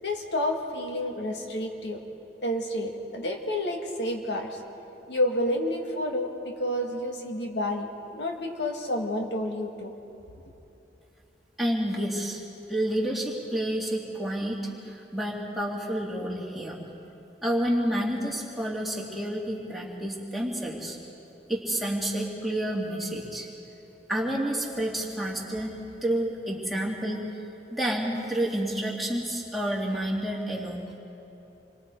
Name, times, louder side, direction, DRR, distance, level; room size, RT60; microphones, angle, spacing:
voice 1, 0.0-2.0 2.4-4.5 5.1-9.9, left 1 dB, 80° left, 1 dB, 2.1 m, -30 dB
voice 2, 11.6-12.4 12.7-14.6 14.8-16.8 17.4-21.0 21.5-23.5 24.1-25.7 26.0-27.2 27.7-30.8, right 1 dB, ahead, -4 dB, 2.7 m, -29 dB
28.0 x 22.5 x 4.8 m, 2.9 s
head